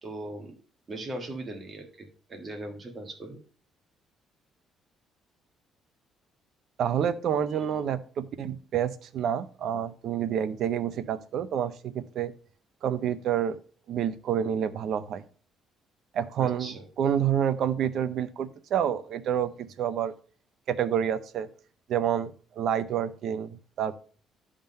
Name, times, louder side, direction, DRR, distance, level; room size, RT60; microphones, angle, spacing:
voice 1, 0.0-0.5 0.9-3.4 16.4-16.9, right 1 dB, 25° right, 3 dB, 1.5 m, -39 dB
voice 2, 6.8-12.3 12.8-13.6 13.9-15.2 16.1-19.5 19.8-20.1 20.7-21.5 21.9-24.0, right 9 dB, 55° right, 13 dB, 0.6 m, -28 dB
10.5 x 3.7 x 5.4 m, 0.42 s
cardioid pair, 160°, 0 cm